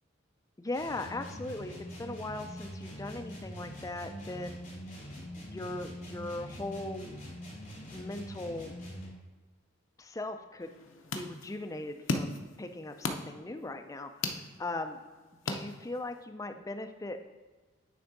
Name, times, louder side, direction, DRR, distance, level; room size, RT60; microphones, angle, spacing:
voice 1, 0.6-1.7 2.0-4.6 5.4-7.2 7.9-8.7 10.0-10.8 11.1-15.0 15.5-17.3, left 2 dB, 15° left, 6 dB, 0.3 m, -39 dB
sound 1, 0.7-9.2, equal, 35° left, 2.2 m, -44 dB
sound 2, 10.6-16.2, left 3 dB, 70° left, 0.6 m, -38 dB
9.4 x 3.5 x 4.0 m, 1.3 s
head